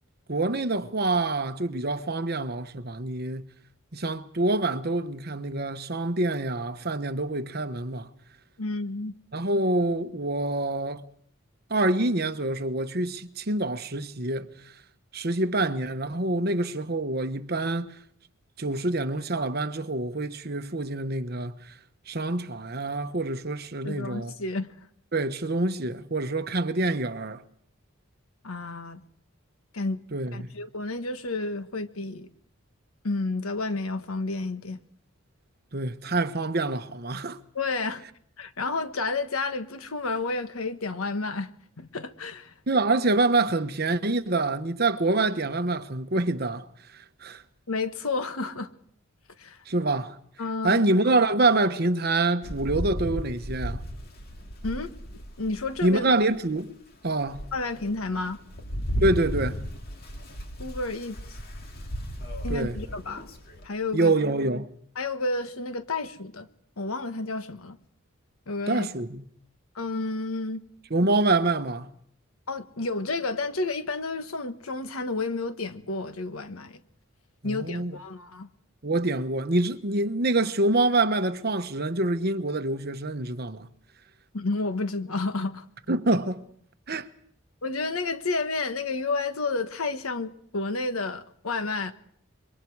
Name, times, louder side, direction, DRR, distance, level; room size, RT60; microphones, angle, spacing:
voice 1, 0.3-3.5 3.9-8.1 9.3-11.0 11.7-14.5 15.1-18.0 18.6-21.7 22.1-24.3 25.1-27.4 30.1-30.5 35.7-37.4 42.7-47.4 49.7-50.2 50.6-53.8 55.8-56.7 57.0-57.5 59.0-59.6 62.5-62.8 63.9-64.7 68.7-69.2 70.9-71.9 77.4-77.9 78.8-83.7 85.9-86.4 86.9-87.1, right 2 dB, 45° right, 1.1 m, -26 dB
voice 2, 8.6-9.1 23.8-24.7 28.4-29.0 29.7-30.0 30.3-32.3 33.0-34.8 37.5-38.0 38.4-41.5 41.8-42.5 47.7-48.7 49.4-49.6 50.4-50.8 54.6-54.9 55.4-56.1 57.5-58.4 60.6-61.2 62.4-63.3 63.6-64.1 65.0-66.5 66.8-67.8 68.5-68.9 69.7-70.6 72.5-76.8 77.4-78.5 84.3-85.6 87.6-91.9, left 3 dB, 85° left, 1.3 m, -31 dB
Rain, 52.4-55.9 56.5-56.6 57.1-63.7, equal, 45° left, 2.4 m, -35 dB
26.5 x 23.0 x 4.8 m
head